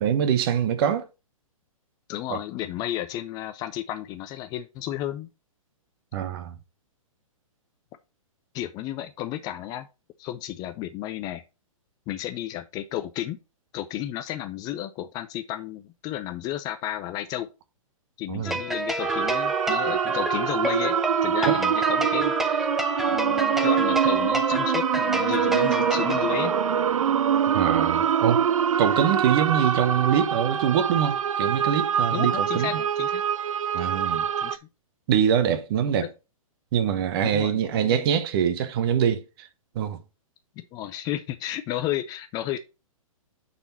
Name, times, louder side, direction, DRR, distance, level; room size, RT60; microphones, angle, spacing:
voice 1, 0.0-1.0 2.3-2.4 6.1-6.5 18.3-18.5 21.5-21.6 27.5-28.4 28.8-32.7 33.7-34.3 35.1-36.1 36.7-39.5 39.7-40.0, right 8 dB, 40° right, 1.1 m, -24 dB
voice 2, 2.1-5.3 8.5-9.9 10.2-11.4 12.1-13.4 13.7-17.5 18.2-21.0 21.2-22.7 23.1-26.5 32.1-33.2 34.4-34.6 36.0-36.1 37.2-38.0 40.7-42.6, left 13 dB, 20° left, 0.4 m, -32 dB
sound 1, 18.5-26.9, right 1 dB, ahead, 0.7 m, -29 dB
sound 2, 19.0-34.6, right 8 dB, 70° right, 0.5 m, -24 dB
8.8 x 4.2 x 4.1 m
figure-of-eight pair, 120°, 18 cm